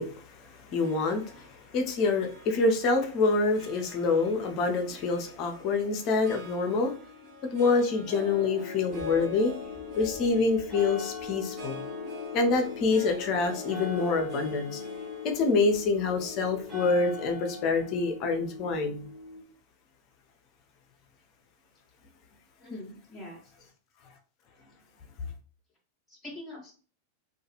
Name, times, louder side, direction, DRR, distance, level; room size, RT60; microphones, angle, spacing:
voice 1, 0.0-7.0 7.5-9.5 10.0-11.8 12.3-14.8 15.2-19.1, left 3 dB, 40° left, 0.5 m, -26 dB
Harp, 0.8-19.2, left 3 dB, 40° right, 0.9 m, -45 dB
sound 1, 8.9-19.4, left 5 dB, 10° right, 1.1 m, -41 dB
voice 2, 22.6-23.7 26.1-26.7, left 1 dB, 10° left, 0.8 m, -43 dB
2.3 x 2.3 x 2.9 m
figure-of-eight pair, 90°, 0 cm